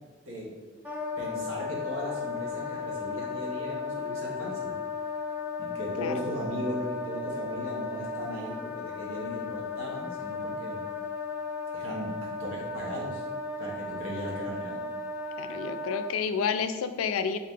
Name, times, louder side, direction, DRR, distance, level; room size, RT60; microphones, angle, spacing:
Wind instrument woodwind instrument, 0.8-16.1, left 4 dB, 10° right, 0.6 m, -35 dB
voice 1, 1.2-4.7 5.6-10.8 11.7-12.1 12.4-13.2 13.6-14.8, equal, 85° right, -4 dB, 1.3 m, -37 dB
sound 1, 3.8-4.8 5.9-6.8, left 2 dB, 55° right, 1.5 m, -46 dB
voice 2, 6.0-6.3 15.4-17.4, left 6 dB, 85° left, 9 dB, 0.3 m, -30 dB
3.9 x 2.8 x 3.7 m, 1.3 s
head